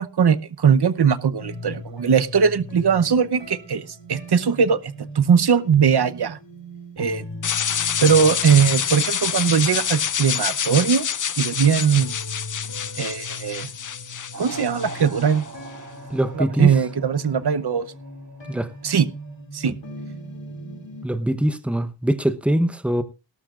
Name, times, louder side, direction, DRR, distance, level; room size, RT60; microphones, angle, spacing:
voice 1, 0.0-6.4 7.0-7.2 8.0-11.1 11.4-12.2 13.0-13.7 14.4-15.4 16.3-17.9 18.8-19.1 19.5-19.7, right 7 dB, 65° right, 0.9 m, -20 dB
sound 1, 1.4-11.6 12.0-21.0, left 1 dB, 85° left, 2.8 m, -40 dB
sound 2, 7.4-15.5, left 8 dB, 45° left, 0.5 m, -27 dB
sound 3, 14.3-19.3, right 2 dB, 45° right, 3.9 m, -42 dB
voice 2, 16.1-16.7 18.5-18.7 21.0-23.0, right 1 dB, 5° right, 0.9 m, -22 dB
18.5 x 12.0 x 2.4 m
wide cardioid pair, 90°, 43 cm